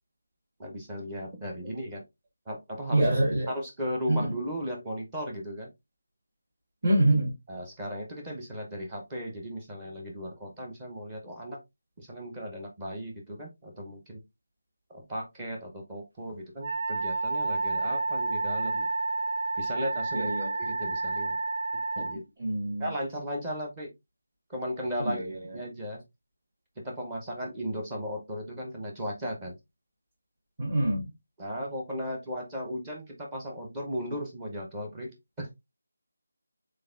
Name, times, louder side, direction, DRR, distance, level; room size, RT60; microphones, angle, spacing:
voice 1, 0.6-2.0 2.5-3.1 3.5-5.7 7.5-11.6 12.0-14.2 14.9-18.9 19.6-20.3 20.6-21.4 22.0-22.2 22.8-23.9 24.5-25.2 25.5-26.0 26.8-29.6 31.4-35.6, equal, 10° right, 0.7 m, -36 dB
voice 2, 2.9-3.5 4.1-4.3 6.8-7.3 20.1-20.5 22.4-22.8 25.0-25.4 30.6-31.1, right 1 dB, 35° right, 1.4 m, -25 dB
Wind instrument woodwind instrument, 16.6-22.1, right 3 dB, 65° right, 1.2 m, -30 dB
3.9 x 3.4 x 2.4 m
figure-of-eight pair, 175°, 0 cm